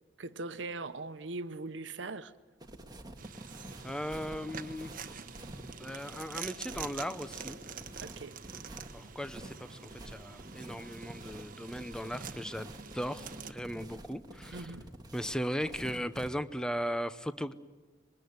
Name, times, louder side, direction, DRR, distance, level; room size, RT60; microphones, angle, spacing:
voice 1, 0.2-2.3 8.0-8.4 14.5-14.9, right 3 dB, 85° right, 0.9 m, -40 dB
sound 1, 2.6-16.3, right 1 dB, 20° right, 1.8 m, -48 dB
sound 2, 3.2-13.5, right 6 dB, 50° right, 1.2 m, -46 dB
voice 2, 3.8-4.9 5.8-7.6 8.9-14.7 15.1-17.5, equal, 5° left, 0.8 m, -37 dB
25.0 x 22.0 x 9.5 m
head